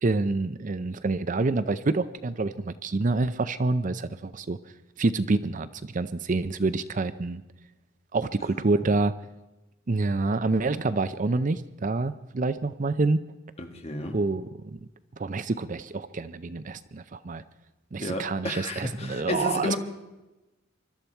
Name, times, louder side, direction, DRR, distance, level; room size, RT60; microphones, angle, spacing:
voice 1, 0.0-4.6 5.0-7.4 8.1-9.2 9.9-13.2 14.1-14.8 15.2-17.4 17.9-19.7, right 3 dB, 40° right, 13 dB, 0.5 m, -27 dB
voice 2, 13.6-14.2 18.0-19.8, left 2 dB, 30° left, 5 dB, 1.6 m, -31 dB
24.5 x 12.5 x 4.5 m, 1.0 s
head